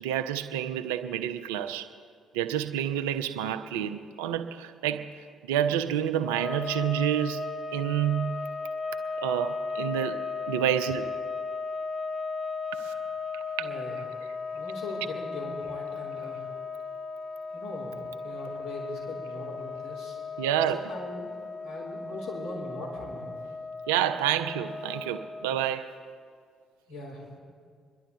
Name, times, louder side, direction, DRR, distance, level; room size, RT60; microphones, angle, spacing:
voice 1, 0.0-1.9 2.3-5.1 5.5-8.4 9.2-10.2 10.5-11.1 12.8-12.9 13.6-13.7 20.4-20.8 23.9-25.9, right 10 dB, 70° right, 9 dB, 0.6 m, -28 dB
sound 1, 6.2-25.8, left 4 dB, 35° left, 0.8 m, -36 dB
voice 2, 13.6-14.0 14.5-16.4 17.5-20.2 20.7-23.3 26.9-27.4, left 2 dB, 70° left, -6 dB, 4.8 m, -40 dB
27.0 x 11.0 x 3.5 m, 2.1 s
figure-of-eight pair, 45°, 0 cm